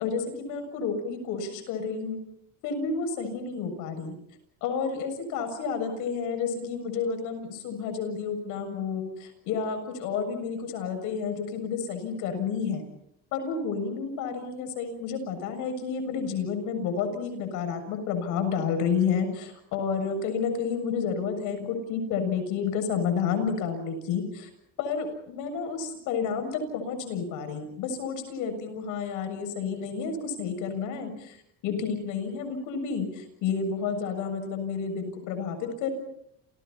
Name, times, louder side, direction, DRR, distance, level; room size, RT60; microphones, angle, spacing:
voice 1, 0.0-2.2 2.6-4.2 4.6-12.8 13.3-24.5 24.8-31.4 31.6-35.9, left 6 dB, 75° left, 8 dB, 7.2 m, -30 dB
29.5 x 29.0 x 4.3 m, 0.75 s
cardioid pair, 130°, 31 cm